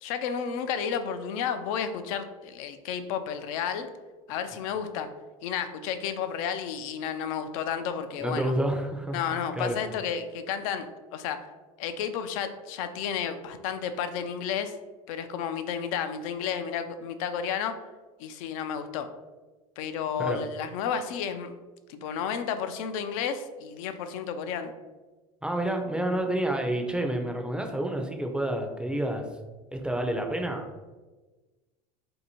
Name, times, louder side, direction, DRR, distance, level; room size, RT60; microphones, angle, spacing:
voice 1, 0.0-3.9 4.3-5.1 5.4-8.5 9.1-11.4 11.8-14.8 15.1-17.8 18.2-19.1 19.8-21.5 21.9-24.7, left 7 dB, 70° left, 9 dB, 0.4 m, -32 dB
voice 2, 8.2-9.8 20.2-20.4 25.4-29.2 29.7-30.7, right 1 dB, 5° right, 3 dB, 0.5 m, -29 dB
2.7 x 2.6 x 4.2 m, 1.2 s
supercardioid pair, 100°, 18 cm